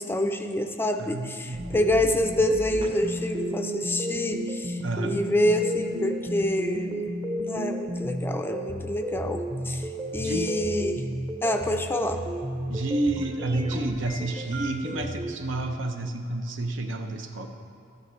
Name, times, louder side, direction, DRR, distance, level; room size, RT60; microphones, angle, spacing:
voice 1, 0.0-7.1 7.5-11.0 11.4-12.2, left 1 dB, 10° left, 6 dB, 0.4 m, -27 dB
voice 2, 1.0-1.8 4.8-5.2 10.2-10.5 12.7-17.5, right 2 dB, 75° right, 5 dB, 0.7 m, -30 dB
sound 1, 1.5-15.4, equal, 25° right, 0.8 m, -33 dB
13.0 x 9.5 x 3.2 m, 2.5 s
head